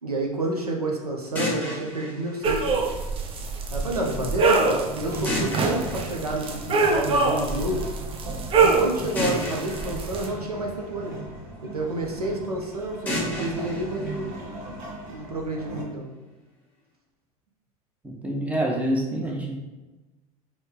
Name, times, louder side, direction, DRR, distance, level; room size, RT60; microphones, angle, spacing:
voice 1, 0.0-2.7 3.7-7.9 8.6-11.2 11.6-14.4 15.1-16.1, right 1 dB, 90° right, 0 dB, 0.6 m, -29 dB
sound 1, 1.4-3.4 5.3-7.2 9.2-11.4 13.1-15.1, left 1 dB, 10° left, 1.2 m, -34 dB
sound 2, 2.4-10.3, right 4 dB, 30° right, 0.5 m, -25 dB
sound 3, 4.0-15.8, right 2 dB, 50° right, 1.0 m, -38 dB
voice 2, 18.0-19.5, right 1 dB, 5° right, -1 dB, 0.9 m, -26 dB
4.4 x 2.8 x 3.2 m, 1.2 s
figure-of-eight pair, 75°, 19 cm